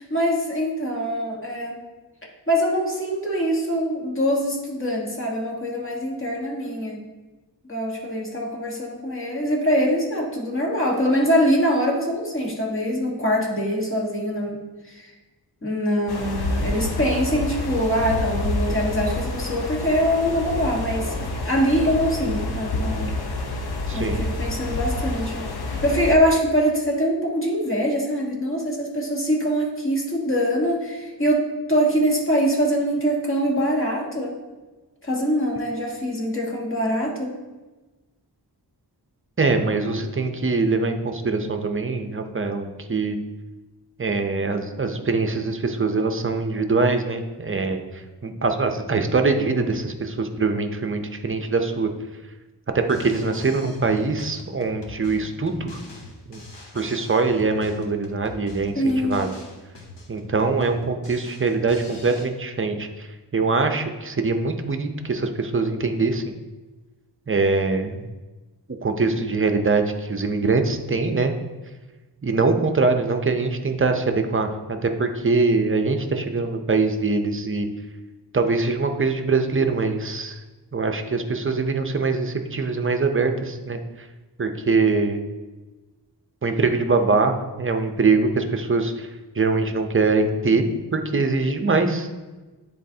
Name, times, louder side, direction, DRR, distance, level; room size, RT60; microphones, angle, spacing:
voice 1, 0.0-1.8 2.5-7.0 7.7-15.1 15.6-23.1 23.9-34.3 35.0-37.3 58.7-59.2, equal, 30° left, -2 dB, 1.4 m, -23 dB
sound 1, 16.1-26.2, left 2 dB, 65° left, 0.8 m, -28 dB
voice 2, 23.9-24.3 39.4-43.2 44.0-51.9 52.7-55.8 56.3-56.4 56.7-59.3 60.1-66.3 67.3-68.1 68.8-71.3 72.2-77.7 78.3-80.4 80.7-84.1 84.4-85.2 86.4-89.1 89.3-92.1, right 3 dB, 30° right, 6 dB, 0.6 m, -23 dB
Drum kit, 52.8-62.3, left 2 dB, 85° left, 1.1 m, -43 dB
9.9 x 4.0 x 2.7 m, 1.2 s
wide cardioid pair, 95°, 42 cm